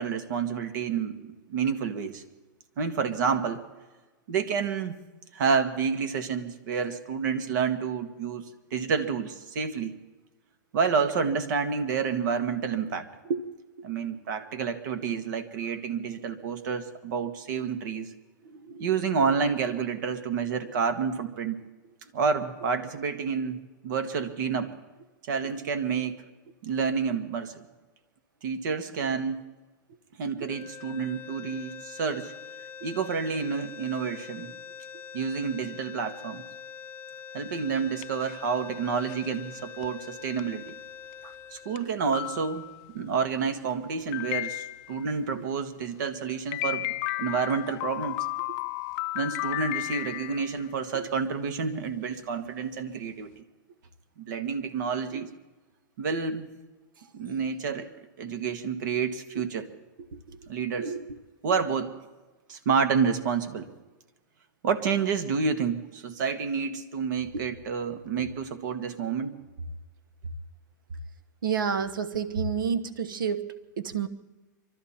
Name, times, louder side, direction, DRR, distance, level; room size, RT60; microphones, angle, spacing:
voice 1, 0.0-2.2 2.8-3.6 4.3-5.0 5.3-10.0 10.7-13.1 13.8-18.1 18.8-21.6 22.1-24.7 25.2-26.2 26.6-27.7 28.4-29.5 30.2-32.3 32.8-34.5 35.1-36.4 37.3-40.8 41.5-42.7 42.9-46.9 47.2-48.2 49.1-53.4 54.2-55.3 56.0-56.5 57.1-57.9 58.2-59.7 60.5-60.9 61.4-62.0 62.5-63.7 64.6-69.4, right 6 dB, 65° right, 9 dB, 1.8 m, -29 dB
voice 2, 18.4-18.9 41.2-41.3 55.1-55.2 60.1-60.4 60.8-61.2 67.3-67.4 68.2-68.3 71.4-74.1, right 6 dB, 85° right, 13 dB, 1.1 m, -31 dB
sound 1, 30.4-42.7, left 8 dB, 15° left, 0.8 m, -44 dB
sound 2, 37.9-38.5 39.1-39.3 39.8-39.9 40.4-40.5 41.1-41.2 41.8-41.9 42.1-42.9 44.1-45.0 46.5-50.7, left 19 dB, 45° left, 0.5 m, -33 dB
24.0 x 13.0 x 4.3 m, 1.2 s
hypercardioid pair, 130°, 11 cm